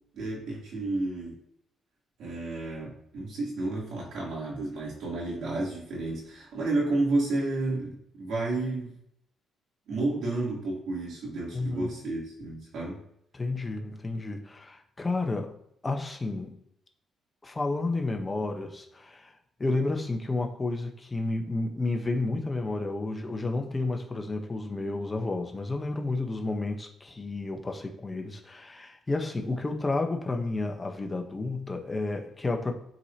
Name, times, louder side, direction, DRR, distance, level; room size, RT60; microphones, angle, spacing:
voice 1, 0.1-1.3 2.2-8.9 9.9-13.0, right 2 dB, 75° right, -4 dB, 3.2 m, -31 dB
voice 2, 11.5-11.9 13.3-15.5 15.8-16.5 17.4-19.3 19.6-32.7, left 2 dB, 25° left, 3 dB, 1.1 m, -31 dB
11.5 x 4.8 x 2.9 m, 0.74 s
cardioid pair, 90°, 0 cm